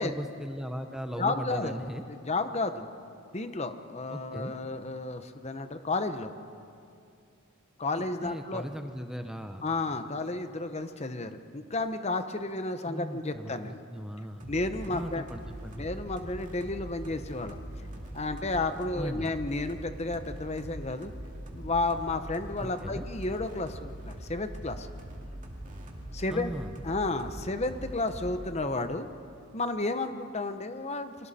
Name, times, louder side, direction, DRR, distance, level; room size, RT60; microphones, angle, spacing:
voice 1, 0.0-2.0 4.1-4.5 8.2-9.6 12.8-14.5 14.9-15.9 19.0-19.3 22.8-23.0 26.3-26.7, equal, ahead, 5 dB, 0.7 m, -38 dB
voice 2, 1.2-2.9 3.3-6.3 7.8-8.6 9.6-13.8 14.5-15.3 15.8-17.6 18.1-21.1 21.5-24.9 26.1-26.5 26.8-29.1 29.5-31.3, left 2 dB, 30° left, 9 dB, 0.9 m, -32 dB
sound 1, 14.4-28.5, right 1 dB, 35° right, 2.5 m, -42 dB
30.0 x 24.5 x 4.3 m, 2.5 s
head